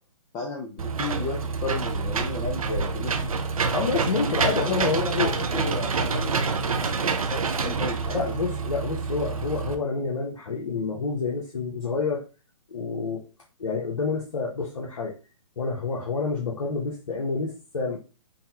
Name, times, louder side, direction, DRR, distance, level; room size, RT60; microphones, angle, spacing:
voice 1, 0.3-3.3 4.6-8.3, left 3 dB, 15° left, -1 dB, 0.4 m, -34 dB
Engine / Mechanisms, 0.8-9.7, right 4 dB, 80° right, 0.5 m, -27 dB
voice 2, 3.7-5.3 8.1-12.2 12.7-13.3 13.6-15.1 15.6-18.0, left 4 dB, 70° left, -3 dB, 0.9 m, -28 dB
3.9 x 2.1 x 2.8 m, 0.33 s
figure-of-eight pair, 135°, 18 cm